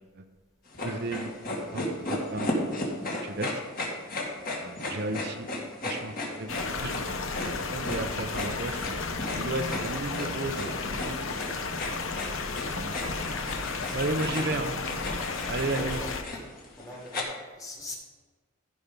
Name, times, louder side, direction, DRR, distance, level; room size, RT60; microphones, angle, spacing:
sound 1, 0.7-17.2, left 1 dB, 45° left, 2.0 m, -35 dB
voice 1, 0.8-1.3 1.7-2.6 3.0-3.6 4.6-5.5 5.8-7.0 7.3-8.8 9.3-11.4 12.7-12.9 13.9-14.7 15.5-16.0, right 2 dB, 50° right, 6 dB, 0.7 m, -34 dB
sound 2, 6.5-16.2, left 4 dB, 65° left, 0.9 m, -33 dB
voice 2, 12.9-13.3 15.3-16.4 16.8-18.0, left 1 dB, 15° left, 0 dB, 1.8 m, -42 dB
14.5 x 5.4 x 5.2 m, 1.3 s
head